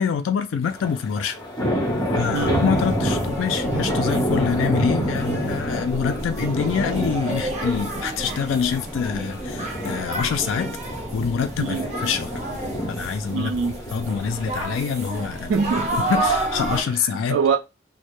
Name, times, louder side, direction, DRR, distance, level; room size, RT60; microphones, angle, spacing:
voice 1, 0.0-1.4 2.1-10.7 11.1-12.4 12.9-13.5 13.9-15.5 16.1-17.4, left 6 dB, 85° left, 0.3 m, -25 dB
sound 1, 0.6-17.0, equal, 20° left, 0.8 m, -28 dB
sound 2, 2.3-16.8, right 2 dB, 35° right, 0.6 m, -31 dB
voice 2, 2.3-2.7 11.6-11.9 13.3-13.8 15.5-16.1 17.3-17.6, right 5 dB, 85° right, 0.4 m, -23 dB
2.1 x 2.1 x 2.9 m
head